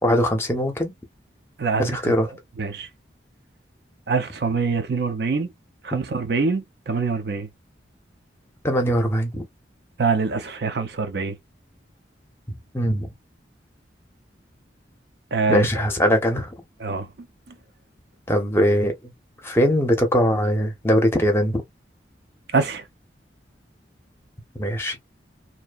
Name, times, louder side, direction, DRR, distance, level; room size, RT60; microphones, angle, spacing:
voice 1, 0.0-0.9 1.8-2.3 8.6-9.4 12.7-13.1 15.5-16.5 18.3-19.1 19.4-21.6 24.6-25.0, equal, 15° left, 0.6 m, -21 dB
voice 2, 1.6-2.1 2.6-2.9 4.1-5.5 5.8-7.5 10.0-11.4 15.3-15.7 16.8-17.1 17.5-17.6 22.5-22.9, right 4 dB, 60° right, 0.5 m, -24 dB
2.7 x 2.1 x 2.3 m
head